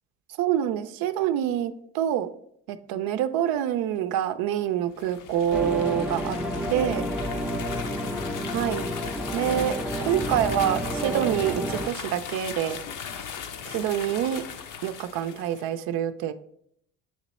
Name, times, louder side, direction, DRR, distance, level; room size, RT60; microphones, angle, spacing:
voice 1, 0.4-2.3 2.7-6.4 6.7-7.1 8.5-8.8 9.3-9.8 10.0-12.8 13.7-14.4 14.8-16.3, right 10 dB, 70° right, 11 dB, 0.5 m, -26 dB
sound 1, 4.9-15.7, left 7 dB, 55° left, 0.7 m, -38 dB
sound 2, 5.5-11.9, equal, 5° right, 0.5 m, -30 dB
7.4 x 3.0 x 4.2 m, 0.71 s
supercardioid pair, 85°, 37 cm